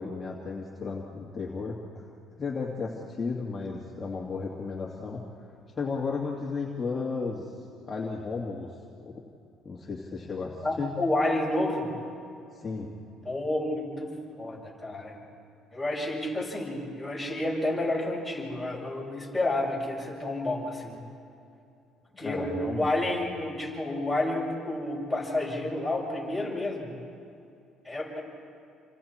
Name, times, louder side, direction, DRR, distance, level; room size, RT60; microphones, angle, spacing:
voice 1, 0.0-1.8 2.4-5.2 5.8-7.5 7.9-8.7 9.0-9.1 9.6-10.9 12.5-12.9 22.2-23.0, left 4 dB, 25° left, -3 dB, 2.4 m, -34 dB
voice 2, 10.6-11.9 13.2-15.2 15.7-21.0 22.2-27.0 27.8-28.2, left 1 dB, 5° left, -5 dB, 7.3 m, -30 dB
29.0 x 25.5 x 4.5 m, 2.5 s
cardioid pair, 115°, 0 cm